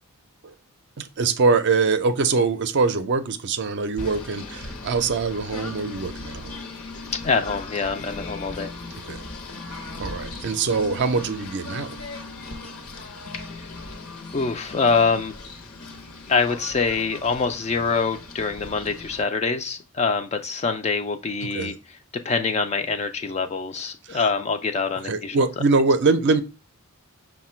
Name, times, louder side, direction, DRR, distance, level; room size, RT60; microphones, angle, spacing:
voice 1, 1.0-6.5 9.1-9.2 9.7-12.0 21.4-21.7 24.1-24.2 25.0-26.4, right 4 dB, 50° right, 0.5 m, -23 dB
Singing / Bird, 4.0-19.2, left 3 dB, 70° left, 0.8 m, -38 dB
voice 2, 7.2-8.7 13.4-13.7 14.3-15.4 16.3-21.7 22.2-25.5, left 4 dB, 30° left, 0.3 m, -25 dB
5.6 x 2.2 x 4.2 m
head